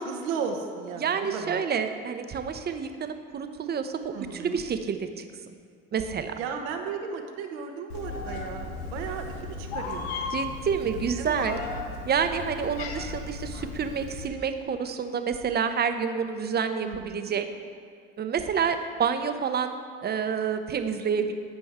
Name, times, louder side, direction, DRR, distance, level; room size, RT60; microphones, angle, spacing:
voice 1, 0.0-1.6 4.1-4.6 6.4-10.3 10.8-11.5 16.8-17.4, right 5 dB, 80° right, 4 dB, 1.0 m, -35 dB
voice 2, 1.0-5.2 5.9-6.3 10.3-11.6 12.1-17.5 18.2-19.7 20.0-21.3, right 6 dB, 35° right, 8 dB, 0.8 m, -28 dB
Meow, 7.9-14.3, left 3 dB, 90° left, 0.9 m, -35 dB
14.5 x 5.3 x 3.6 m, 2.1 s
hypercardioid pair, 75°, 30 cm